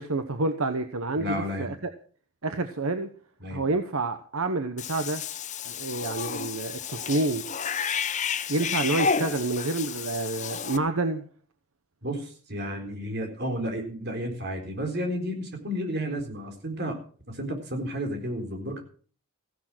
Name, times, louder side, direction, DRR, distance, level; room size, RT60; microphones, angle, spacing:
voice 1, 0.0-1.9 2.4-3.1 3.5-5.2 5.6-7.4 8.5-11.2, right 2 dB, 75° right, 8 dB, 1.1 m, -28 dB
voice 2, 1.2-1.8 3.4-3.6 12.0-17.0 17.3-18.8, equal, 50° right, 4 dB, 3.9 m, -32 dB
Cat / Bathtub (filling or washing), 4.8-10.8, left 6 dB, 35° left, 0.7 m, -31 dB
15.5 x 10.5 x 6.1 m, 0.43 s
head